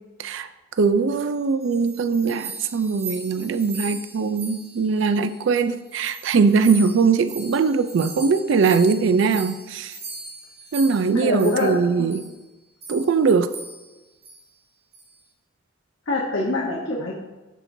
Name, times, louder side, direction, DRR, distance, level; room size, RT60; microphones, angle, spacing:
voice 1, 0.8-10.0 10.7-12.3 12.9-13.5, right 5 dB, 70° right, 11 dB, 0.4 m, -21 dB
sound 1, 1.3-5.6 5.9-11.8 12.1-12.3 12.8-13.1 13.5-13.9 14.2-14.4 14.9-15.2, right 4 dB, 30° right, 1.7 m, -39 dB
voice 2, 11.1-12.1 16.1-17.2, left 2 dB, 75° left, -3 dB, 1.0 m, -25 dB
12.0 x 4.4 x 2.7 m, 1.1 s
head